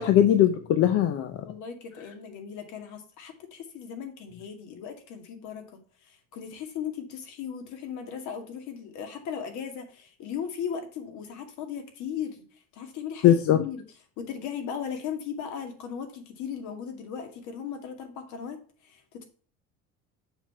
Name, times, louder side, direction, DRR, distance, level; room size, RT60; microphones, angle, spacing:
voice 1, 0.0-1.4 13.2-13.6, left 11 dB, 50° left, 8 dB, 0.8 m, -20 dB
voice 2, 1.4-5.6 6.0-12.4 12.7-13.8 14.2-18.6 18.8-19.2, left 7 dB, 65° left, 5 dB, 2.2 m, -37 dB
7.1 x 5.8 x 4.4 m, 0.43 s
cardioid pair, 165°, 31 cm